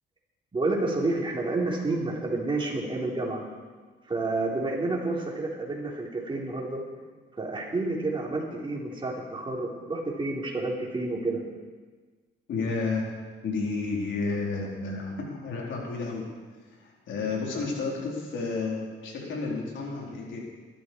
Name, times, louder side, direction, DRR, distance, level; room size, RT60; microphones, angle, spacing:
voice 1, 0.5-3.4 4.1-6.8 7.4-11.4, right 2 dB, 25° right, -2 dB, 4.1 m, -29 dB
voice 2, 12.5-13.1 13.4-16.2 16.7-20.4, left 4 dB, 70° left, -2 dB, 4.4 m, -31 dB
20.5 x 13.5 x 4.8 m, 1.4 s
cardioid pair, 90°, 20 cm